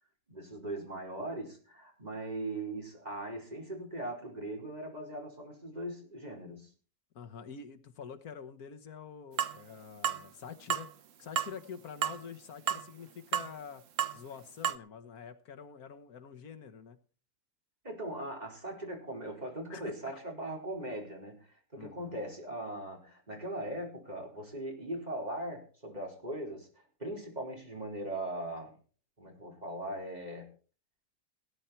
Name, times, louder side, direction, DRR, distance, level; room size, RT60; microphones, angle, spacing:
voice 1, 0.3-6.7 17.8-26.7 27.0-28.7 29.2-30.5, right 1 dB, 30° right, 4.5 m, -40 dB
voice 2, 7.2-10.9 11.2-13.8 14.1-17.0 19.7-20.2 21.8-22.2, left 6 dB, 85° left, 1.7 m, -47 dB
sound 1, 9.4-9.6 10.0-10.2 10.7-10.9 11.4-11.5 12.0-12.2 12.7-12.9 13.3-13.5 14.0-14.2 14.6-14.7, right 9 dB, 60° right, 1.1 m, -31 dB
18.0 x 10.5 x 4.5 m
omnidirectional pair, 1.5 m